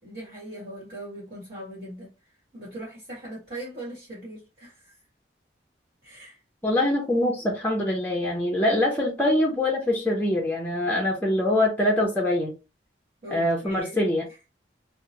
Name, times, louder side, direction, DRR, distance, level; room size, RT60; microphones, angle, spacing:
voice 1, 0.0-5.0 6.0-6.4 13.2-14.0, right 1 dB, 35° right, 1.5 m, -40 dB
voice 2, 6.6-12.5 13.3-14.3, left 1 dB, 10° left, 0.5 m, -24 dB
2.8 x 2.0 x 2.8 m
head